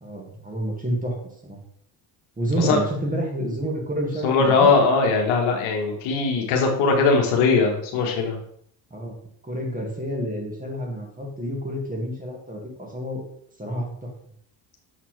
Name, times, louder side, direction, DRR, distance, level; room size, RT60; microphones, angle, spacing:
voice 1, 0.0-1.2 1.4-1.6 2.4-4.7 8.9-9.2 9.4-13.2 13.6-14.1, right 1 dB, 15° right, 0 dB, 1.9 m, -29 dB
voice 2, 4.2-8.4, left 4 dB, 80° left, 2 dB, 1.4 m, -20 dB
6.7 x 4.3 x 3.2 m, 0.68 s
supercardioid pair, 85°, 47 cm